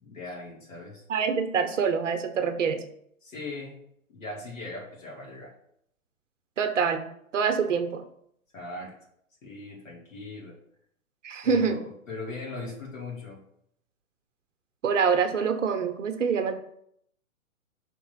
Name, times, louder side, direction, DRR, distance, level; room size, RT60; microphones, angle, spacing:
voice 1, 0.0-1.0 3.2-3.8 4.1-5.5 8.5-8.9 9.4-10.6 11.4-13.4, left 2 dB, 65° left, -2 dB, 2.8 m, -39 dB
voice 2, 1.1-2.8 6.6-7.0 7.3-8.0 11.2-11.8 14.8-16.5, right 6 dB, 60° right, 7 dB, 1.0 m, -25 dB
5.9 x 3.8 x 6.0 m, 0.70 s
figure-of-eight pair, 120°, 41 cm